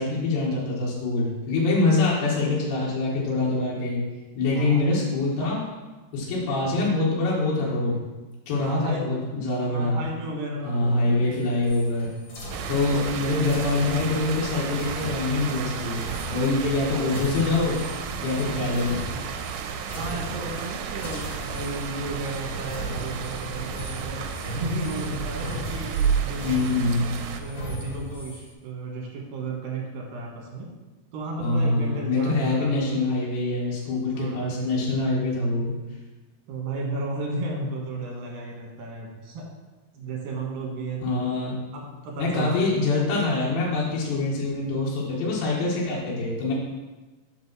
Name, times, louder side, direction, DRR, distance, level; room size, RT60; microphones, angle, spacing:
voice 1, 0.0-4.0 4.4-5.6 6.1-8.0 8.5-10.0 10.6-12.1 12.7-17.8 18.2-19.1 26.4-27.1 31.4-35.7 41.0-41.6 42.2-46.5, left 3 dB, 80° left, -5 dB, 3.6 m, -25 dB
voice 2, 4.5-4.9 8.6-9.2 9.6-11.5 12.7-13.1 20.0-24.2 24.5-26.7 27.4-30.7 31.1-33.1 34.1-34.7 36.5-39.5 39.9-41.3 41.7-42.7, right 2 dB, 60° right, -2 dB, 2.9 m, -34 dB
sound 1, 11.3-19.6 19.9-20.7 21.0-28.5, equal, 50° left, 3.1 m, -38 dB
sound 2, 12.5-27.4, right 7 dB, 85° right, 2.8 m, -32 dB
7.0 x 5.3 x 6.0 m, 1.2 s
omnidirectional pair, 5.0 m